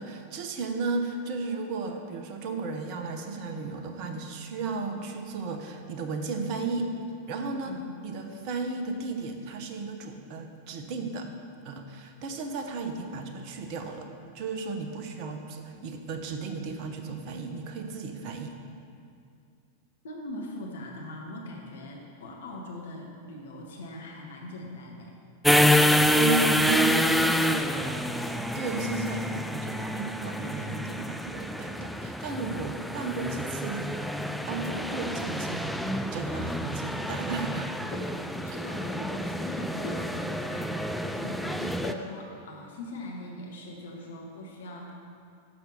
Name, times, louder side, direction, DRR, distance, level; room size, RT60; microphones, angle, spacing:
voice 1, 0.0-6.9 7.3-7.7 8.0-11.3 11.6-14.1 14.3-18.6 26.1-34.2 34.5-38.3, right 4 dB, 40° right, 4 dB, 0.8 m, -34 dB
voice 2, 20.0-25.1 36.4-36.6 38.4-44.9, left 1 dB, 60° left, -1 dB, 1.2 m, -41 dB
sound 1, 25.4-41.9, left 1 dB, ahead, 0.3 m, -27 dB
sound 2, 34.0-34.2 35.9-36.2 37.9-38.2 38.5-38.6 39.8-40.1 41.8-42.2, left 3 dB, 30° left, 1.3 m, -40 dB
7.0 x 6.0 x 6.6 m, 2.4 s
figure-of-eight pair, 90°, 0 cm